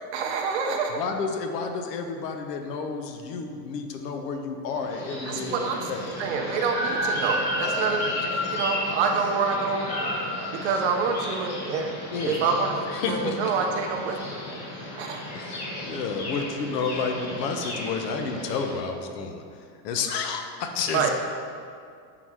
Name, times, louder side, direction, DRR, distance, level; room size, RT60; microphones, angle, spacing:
voice 1, 0.1-1.0 5.3-5.9 6.2-9.9 10.5-11.9 12.2-12.7 13.1-14.3 15.0-15.2 20.9-21.1, right 5 dB, 45° right, 3 dB, 0.5 m, -27 dB
voice 2, 1.0-6.0 12.1-12.4 12.9-13.5 15.3-19.4 19.8-21.1, left 5 dB, 70° left, 5 dB, 0.8 m, -30 dB
sound 1, 4.8-18.7, left 1 dB, 35° left, 1.2 m, -33 dB
5.9 x 3.9 x 4.6 m, 2.3 s
supercardioid pair, 165°, 50 cm